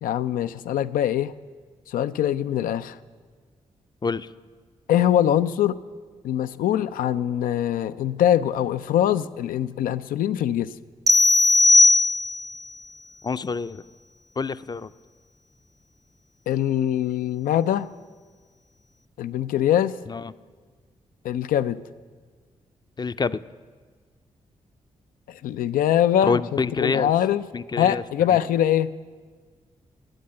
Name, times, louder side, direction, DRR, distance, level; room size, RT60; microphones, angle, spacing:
voice 1, 0.0-1.3 1.9-3.0 4.9-5.8 6.2-10.7 16.5-17.9 19.2-20.0 21.2-21.8 25.3-27.4 27.8-28.9, left 11 dB, 85° left, 13 dB, 0.4 m, -23 dB
sound 1, 11.1-12.6, left 2 dB, 25° right, 0.6 m, -17 dB
voice 2, 13.2-13.8 14.4-14.9 20.1-20.3 23.0-23.4 26.2-27.1 27.5-28.0 28.3-28.4, left 4 dB, 30° left, 14 dB, 0.5 m, -26 dB
14.0 x 9.5 x 7.6 m, 1.5 s
supercardioid pair, 45°, 14 cm